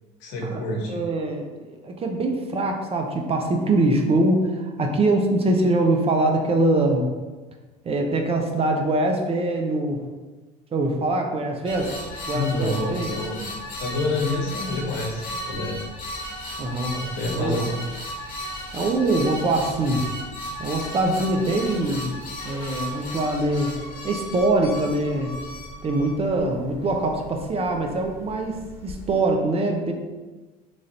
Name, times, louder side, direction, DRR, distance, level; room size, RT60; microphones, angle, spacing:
voice 1, 0.2-1.0 12.3-13.5 13.8-15.8 16.9-17.7, left 1 dB, 65° left, 0 dB, 0.9 m, -27 dB
voice 2, 0.9-7.1 7.8-10.0 10.7-11.9 12.3-13.1 16.6-17.0 17.3-17.6 18.7-20.1 20.6-22.1 22.4-23.7 24.0-25.3 25.8-29.9, right 2 dB, 30° right, 2 dB, 0.6 m, -23 dB
sound 1, 11.6-29.2, left 1 dB, 45° left, 1.3 m, -36 dB
3.1 x 2.5 x 4.1 m, 1.3 s
hypercardioid pair, 80°, 20 cm